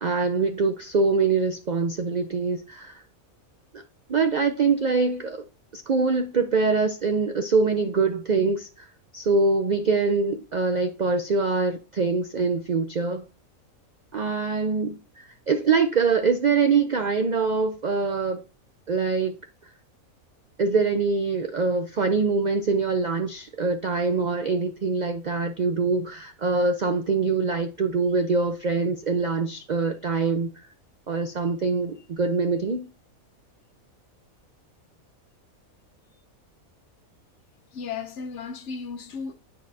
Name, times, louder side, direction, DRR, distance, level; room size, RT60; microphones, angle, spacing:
voice 1, 0.0-3.0 4.1-5.4 5.7-8.9 9.1-13.3 14.1-18.4 18.9-19.4 20.6-30.7 31.1-32.9, right 4 dB, 75° right, 0.4 m, -24 dB
voice 2, 37.7-39.3, left 5 dB, 65° left, 0.9 m, -34 dB
9.5 x 4.7 x 2.6 m
omnidirectional pair, 1.5 m